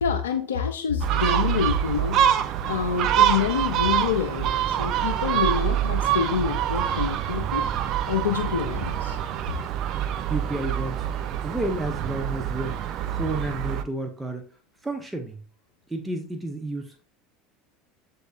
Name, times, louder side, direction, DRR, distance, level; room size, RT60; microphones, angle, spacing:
voice 1, 0.0-2.2 2.7-7.7 8.1-9.2, left 7 dB, 80° left, 4 dB, 0.4 m, -27 dB
Gull seagull, 1.0-13.8, right 10 dB, 50° right, 0.4 m, -25 dB
voice 2, 10.3-11.0 11.4-12.8 13.1-14.5 14.8-15.4 15.9-17.0, right 2 dB, 10° right, 5 dB, 0.7 m, -31 dB
8.0 x 2.7 x 2.3 m, 0.40 s
hypercardioid pair, 75°, 0 cm